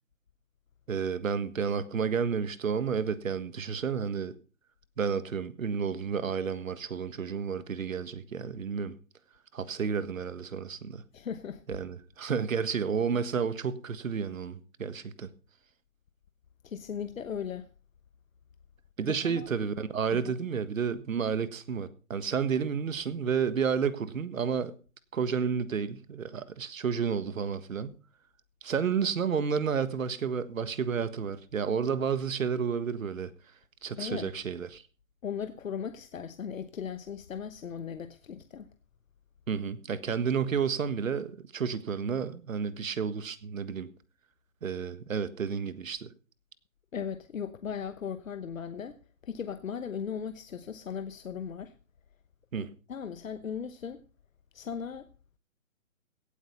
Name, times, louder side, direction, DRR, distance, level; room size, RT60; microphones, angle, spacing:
voice 1, 0.9-4.3 5.0-8.9 9.5-11.0 11.7-15.3 19.0-24.7 25.1-27.9 28.6-33.3 33.8-34.8 39.5-43.9 44.6-46.1 52.5-52.7, right 6 dB, 75° right, 1.6 m, -31 dB
voice 2, 11.1-11.6 16.6-17.7 19.1-19.5 20.1-20.3 34.0-34.3 35.2-38.7 46.9-51.7 52.6-54.0 54.5-55.1, left 7 dB, 80° left, 1.1 m, -37 dB
17.0 x 8.5 x 5.4 m
hypercardioid pair, 150°, 40 cm